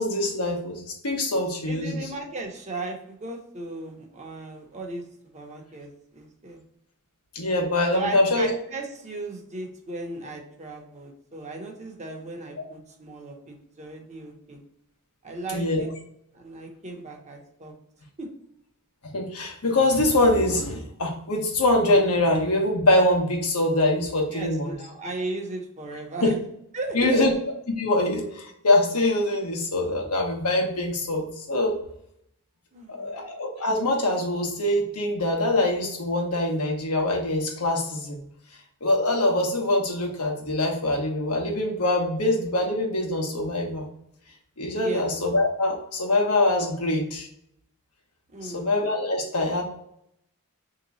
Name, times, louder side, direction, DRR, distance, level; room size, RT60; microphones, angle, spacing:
voice 1, 0.0-2.0 7.3-8.5 15.5-15.9 19.1-24.7 26.9-27.3 27.8-31.7 33.0-38.2 38.8-43.8 44.6-47.3 48.4-49.6, left 2 dB, 80° left, 1 dB, 1.1 m, -24 dB
voice 2, 1.7-5.0 5.3-6.6 7.9-14.6 15.2-15.9 16.3-17.7 18.2-18.3 24.3-26.3 26.7-27.3 32.7-33.2 44.8-45.1 48.3-48.7, right 2 dB, 30° right, 1 dB, 0.8 m, -36 dB
3.5 x 2.9 x 4.0 m, 0.74 s
head